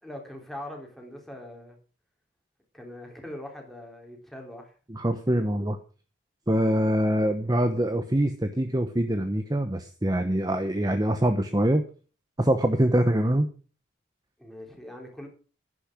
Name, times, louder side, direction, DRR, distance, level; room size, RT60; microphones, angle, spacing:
voice 1, 0.0-1.8 2.7-4.7 14.4-15.3, left 1 dB, ahead, 1 dB, 3.5 m, -42 dB
voice 2, 4.9-5.8 6.5-11.8 12.4-13.5, right 1 dB, 20° right, 8 dB, 0.9 m, -24 dB
11.0 x 10.5 x 6.1 m, 0.37 s
head